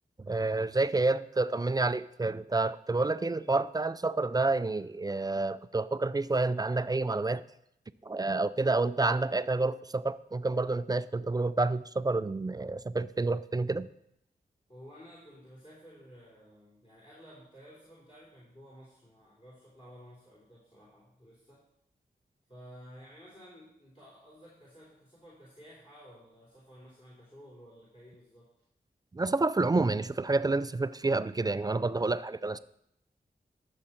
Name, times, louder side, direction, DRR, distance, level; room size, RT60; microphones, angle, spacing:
voice 1, 0.3-7.4 8.0-13.9 29.1-32.6, right 3 dB, 25° right, 14 dB, 0.3 m, -29 dB
voice 2, 14.7-21.6 22.5-28.5, equal, 30° left, -6 dB, 3.5 m, -53 dB
13.0 x 7.3 x 4.4 m, 0.77 s
wide cardioid pair, 95°, 17 cm